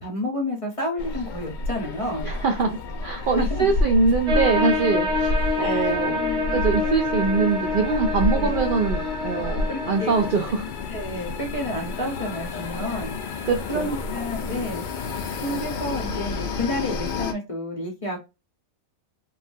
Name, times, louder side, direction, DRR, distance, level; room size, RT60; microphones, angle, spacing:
voice 1, 0.0-2.3 3.1-3.7 5.6-6.5 8.3-8.6 9.7-10.1 10.9-13.2 13.7-14.8 15.4-18.2, left 1 dB, 30° left, 1 dB, 0.7 m, -30 dB
sound 1, 1.0-17.3, left 2 dB, 75° left, 0.4 m, -30 dB
voice 2, 2.2-6.2 6.5-10.6 13.5-13.9, right 4 dB, 85° right, 3 dB, 0.4 m, -23 dB
sound 2, 4.3-10.3, left 3 dB, 60° right, 1.3 m, -27 dB
3.3 x 2.3 x 2.5 m, 0.25 s
omnidirectional pair, 1.4 m